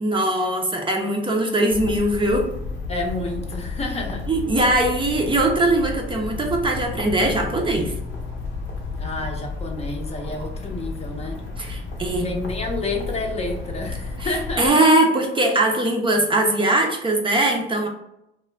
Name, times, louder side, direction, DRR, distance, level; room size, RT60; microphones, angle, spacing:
voice 1, 0.0-2.5 4.3-7.9 11.6-12.3 14.6-17.9, right 1 dB, 25° right, 2 dB, 0.5 m, -20 dB
sound 1, 1.7-14.7, left 3 dB, 70° left, 0.7 m, -32 dB
voice 2, 2.9-4.3 9.0-11.4 12.1-14.7, left 2 dB, 30° left, 2 dB, 0.6 m, -30 dB
2.3 x 2.1 x 3.2 m, 0.82 s
cardioid pair, 90°, 20 cm